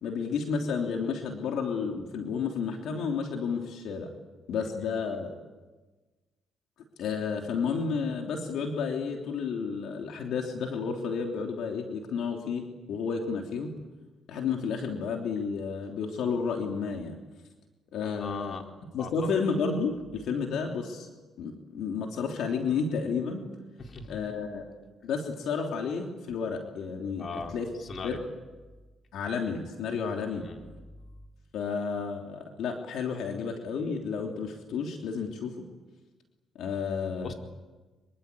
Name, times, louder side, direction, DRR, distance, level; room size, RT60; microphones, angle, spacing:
voice 1, 0.0-4.1 4.5-5.3 7.0-13.7 14.3-17.1 17.9-18.6 18.9-21.1 21.4-23.5 24.1-24.7 25.0-27.3 27.5-27.7 28.0-28.2 29.1-30.4 31.5-35.7 36.5-37.3, left 5 dB, 80° left, 2 dB, 3.2 m, -31 dB
voice 2, 18.0-18.6 19.0-19.3 23.8-24.2 27.2-27.5 27.8-28.2 30.3-30.7 37.2-37.3, left 4 dB, 45° left, 2 dB, 4.4 m, -39 dB
26.0 x 24.0 x 8.5 m, 1.2 s
cardioid pair, 90°, 0 cm